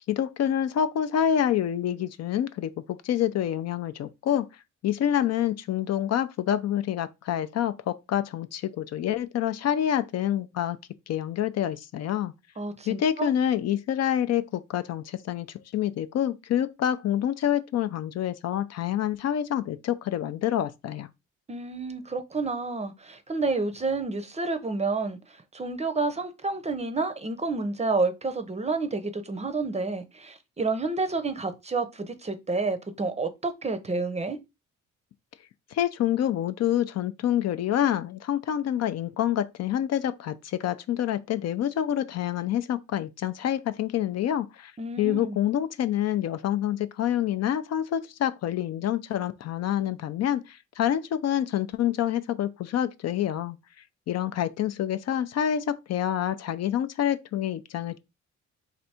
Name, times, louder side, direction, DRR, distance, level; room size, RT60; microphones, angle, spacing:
voice 1, 0.1-4.5 4.8-10.8 11.1-12.3 12.9-21.1 35.7-44.7 45.0-53.6 54.1-58.0, left 10 dB, 60° left, 0.5 m, -27 dB
voice 2, 12.6-13.3 21.5-25.2 25.5-34.4 44.8-45.4, right 3 dB, 20° right, 0.6 m, -29 dB
3.3 x 2.6 x 4.2 m
cardioid pair, 90°, 30 cm